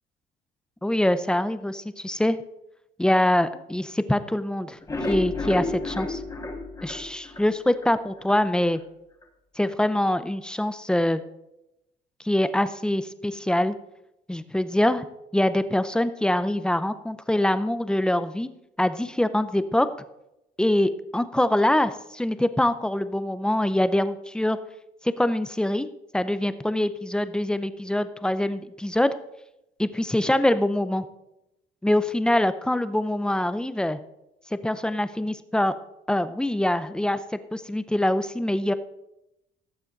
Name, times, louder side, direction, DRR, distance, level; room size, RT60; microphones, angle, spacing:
voice 1, 0.8-2.4 3.0-4.8 5.1-6.2 6.8-8.8 9.6-11.2 12.2-13.8 14.3-15.0 15.3-18.5 18.8-19.9 20.6-24.6 25.2-25.9 26.1-29.1 29.8-31.0 31.8-34.0 34.5-35.7 36.1-37.2 37.5-38.7, left 1 dB, 5° left, 12 dB, 0.6 m, -24 dB
sound 1, 4.7-7.9 8.3-8.4 8.8-8.9 9.2-9.3, left 2 dB, 20° left, 1.9 m, -31 dB
17.0 x 7.3 x 4.0 m, 0.88 s
cardioid pair, 110°, 17 cm